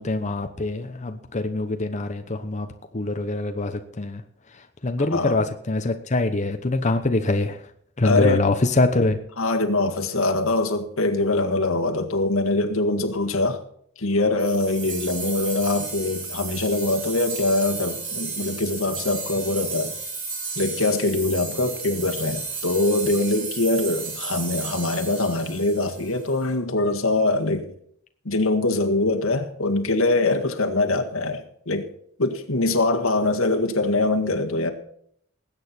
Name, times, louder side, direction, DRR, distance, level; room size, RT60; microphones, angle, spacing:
voice 1, 0.0-2.7 2.9-4.2 4.8-7.6 8.0-9.2, left 2 dB, 35° left, 0.9 m, -24 dB
voice 2, 5.1-5.4 8.0-8.4 9.4-13.6 14.0-19.9 20.6-27.7 28.3-31.9 32.2-34.7, left 2 dB, 90° left, 1.8 m, -23 dB
sound 1, 14.4-26.4, right 4 dB, 70° right, 6.7 m, -33 dB
20.0 x 8.9 x 4.4 m
head